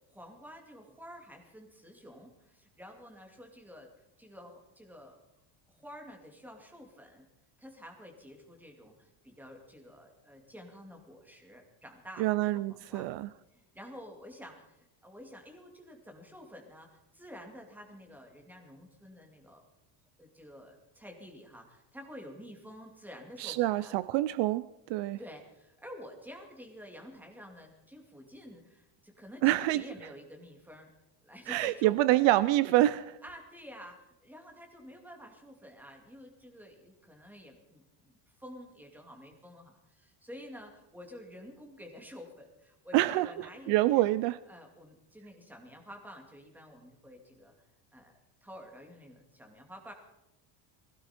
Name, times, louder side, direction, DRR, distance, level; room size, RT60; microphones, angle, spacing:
voice 1, 0.1-3.9 4.2-5.2 5.7-7.3 7.6-13.1 13.5-19.6 20.2-24.0 25.2-30.9 31.2-32.3 33.2-44.1 44.5-47.5 47.9-48.1 48.4-49.9, equal, 5° right, 2 dB, 2.3 m, -50 dB
voice 2, 12.2-13.3 23.4-25.2 29.4-29.8 31.5-33.2 42.9-44.4, right 16 dB, 65° right, 17 dB, 0.6 m, -27 dB
20.0 x 16.5 x 4.4 m, 0.91 s
cardioid pair, 170°, 47 cm